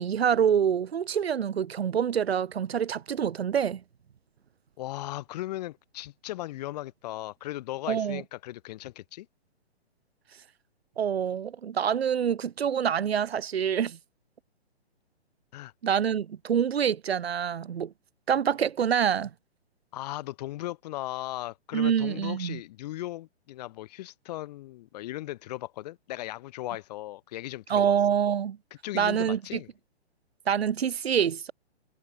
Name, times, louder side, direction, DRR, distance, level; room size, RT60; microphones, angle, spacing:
voice 1, 0.0-3.8 7.9-8.2 11.0-14.0 15.8-17.9 18.3-19.3 21.7-22.6 27.7-28.6 28.9-29.6 30.5-31.5, right 8 dB, 65° right, 1.7 m, -26 dB
voice 2, 4.8-9.3 15.5-15.7 19.9-27.9 28.8-29.7, left 16 dB, 40° left, 2.9 m, -37 dB
hypercardioid pair, 145°, 33 cm